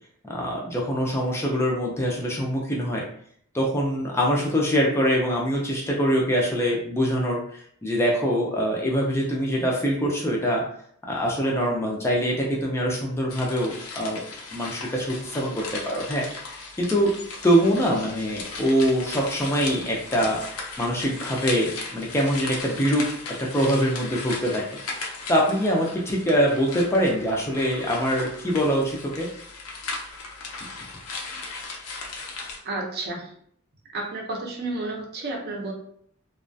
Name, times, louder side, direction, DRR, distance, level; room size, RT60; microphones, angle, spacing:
voice 1, 0.3-3.0 3.5-10.6 11.1-14.3 14.5-16.2 16.8-17.1 17.4-20.4 20.8-23.1 23.4-24.6 25.3-29.3, equal, 10° left, -2 dB, 0.4 m, -24 dB
sound 1, 13.3-32.6, left 3 dB, 90° left, 0.5 m, -37 dB
voice 2, 32.6-33.3 33.9-35.7, right 2 dB, 50° right, 0 dB, 0.6 m, -31 dB
2.3 x 2.1 x 2.6 m, 0.65 s
head